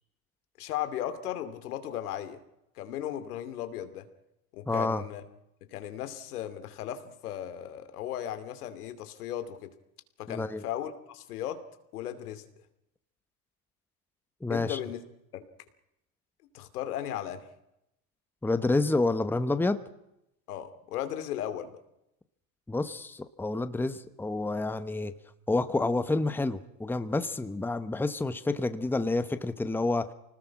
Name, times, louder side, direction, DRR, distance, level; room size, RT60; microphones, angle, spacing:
voice 1, 0.6-2.4 2.8-4.1 4.5-5.2 5.7-9.7 10.2-11.6 11.9-12.4 14.5-15.0 15.3-15.4 16.5-17.4 20.5-21.8, left 11 dB, 90° left, 10 dB, 2.8 m, -36 dB
voice 2, 4.7-5.0 10.3-10.6 14.4-14.8 18.4-19.8 22.7-25.1 25.5-30.1, left 2 dB, 5° left, 11 dB, 1.0 m, -29 dB
25.5 x 19.5 x 5.9 m, 0.83 s
supercardioid pair, 120°, 44 cm